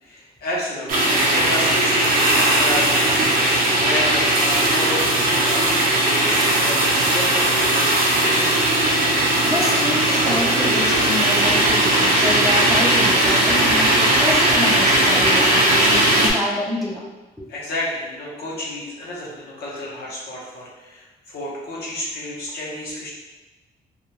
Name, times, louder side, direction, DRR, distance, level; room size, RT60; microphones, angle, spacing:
voice 1, 0.0-3.4 3.7-8.5 17.5-23.1, left 1 dB, 70° left, -5 dB, 0.8 m, -31 dB
sound 1, 0.9-16.3, right 1 dB, 60° right, 0.5 m, -18 dB
voice 2, 9.4-17.0, left 1 dB, ahead, -5 dB, 0.3 m, -27 dB
2.3 x 2.2 x 2.8 m, 1.2 s
cardioid pair, 175°, 17 cm